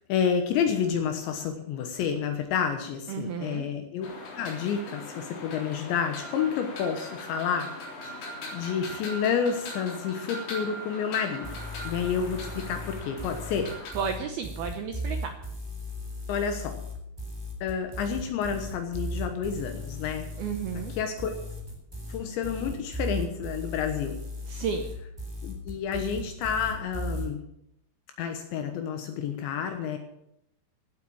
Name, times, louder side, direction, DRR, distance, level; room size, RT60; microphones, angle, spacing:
voice 1, 0.1-4.1 4.4-7.7 8.0-11.5 11.8-13.7 16.3-16.8 17.6-20.3 20.9-21.5 22.1-24.2 25.4-27.4 28.2-30.0, left 7 dB, 75° left, 6 dB, 3.3 m, -29 dB
voice 2, 3.1-3.7 13.9-15.3 20.4-20.9 24.5-24.9, right 6 dB, 75° right, 6 dB, 2.3 m, -32 dB
sound 1, 4.0-13.9, left 1 dB, 55° left, 5.5 m, -40 dB
sound 2, 11.4-27.3, equal, 5° right, 2.7 m, -37 dB
16.5 x 8.2 x 7.4 m, 0.79 s
omnidirectional pair, 5.6 m